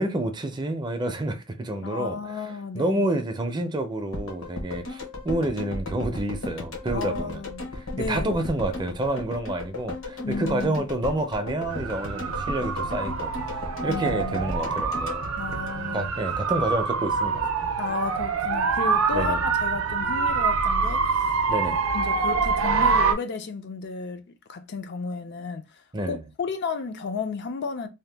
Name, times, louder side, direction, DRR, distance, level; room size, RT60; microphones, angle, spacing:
voice 1, 0.0-2.2 2.7-7.4 7.8-15.3 15.9-17.5 19.1-19.4 21.5-21.8 25.9-26.2, right 1 dB, 20° right, 0.5 m, -29 dB
voice 2, 1.8-3.0 6.9-7.6 7.9-8.3 10.2-10.8 13.9-14.4 15.4-16.1 17.8-21.3 21.9-24.2 24.5-25.8 26.1-27.9, left 4 dB, 55° left, 0.5 m, -33 dB
sound 1, 4.1-16.3 16.6-16.7, left 2 dB, 75° left, 1.0 m, -35 dB
sound 2, 11.7-23.1, right 5 dB, 80° right, 0.5 m, -25 dB
2.8 x 2.2 x 3.3 m
head